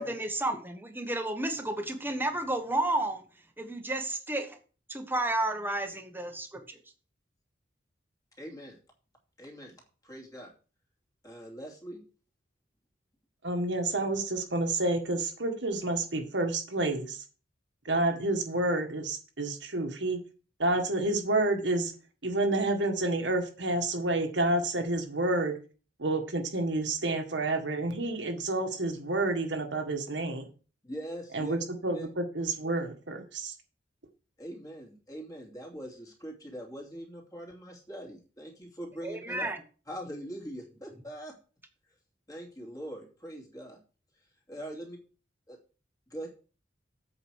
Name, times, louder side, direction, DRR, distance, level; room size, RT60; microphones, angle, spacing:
voice 1, 0.0-3.2 3.6-4.6 4.9-6.8 39.0-39.6, right 2 dB, 10° right, 6 dB, 1.3 m, -32 dB
voice 2, 8.4-8.8 9.4-9.7 10.0-10.5 11.2-12.0 30.8-31.6 31.9-32.1 34.4-39.5 39.9-41.4 42.3-43.8 44.5-45.0 45.5-45.6 46.1-46.3, equal, 20° left, 0 dB, 2.7 m, -42 dB
voice 3, 13.4-17.2 17.9-20.2 20.6-21.9 22.2-25.5 26.0-30.5 31.3-33.5, right 2 dB, 75° right, 4 dB, 1.8 m, -29 dB
8.2 x 5.2 x 6.4 m, 0.37 s
head